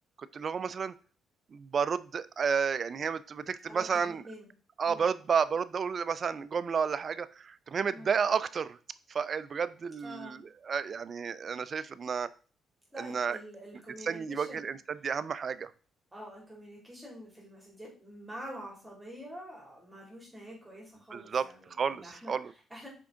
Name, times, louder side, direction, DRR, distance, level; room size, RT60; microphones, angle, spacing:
voice 1, 0.2-0.9 1.5-4.3 4.8-8.8 9.1-12.3 13.0-13.4 14.0-15.7 21.1-22.5, right 6 dB, 45° right, 15 dB, 0.4 m, -31 dB
voice 2, 3.6-4.5 4.9-5.1 7.9-8.1 10.0-10.4 12.9-14.7 16.1-22.4 22.7-22.9, equal, 10° right, -3 dB, 2.7 m, -47 dB
5.9 x 4.5 x 3.7 m, 0.39 s
cardioid pair, 90°, 0 cm